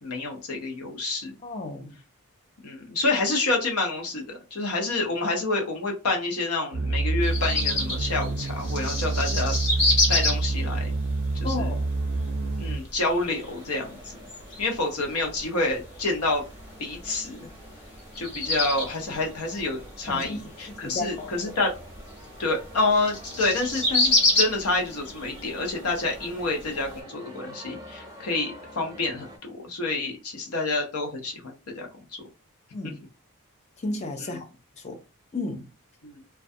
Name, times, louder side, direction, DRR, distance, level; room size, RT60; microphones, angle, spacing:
voice 1, 0.0-1.3 2.6-10.9 11.3-11.7 12.6-14.2 14.6-16.4 16.8-17.5 18.2-21.7 22.4-31.9 34.2-34.4 36.0-36.2, left 2 dB, 90° left, 0.7 m, -28 dB
voice 2, 1.4-2.0 11.4-11.9 20.1-20.4 20.7-21.3 32.7-33.0 33.8-34.5 34.8-35.0 35.3-35.7, left 2 dB, 30° left, 0.5 m, -33 dB
sound 1, 6.7-12.8, right 2 dB, 55° right, 0.4 m, -27 dB
sound 2, 7.2-27.0, left 2 dB, 55° left, 1.0 m, -30 dB
sound 3, 13.0-29.4, equal, 15° right, 0.6 m, -47 dB
2.3 x 2.2 x 2.6 m
head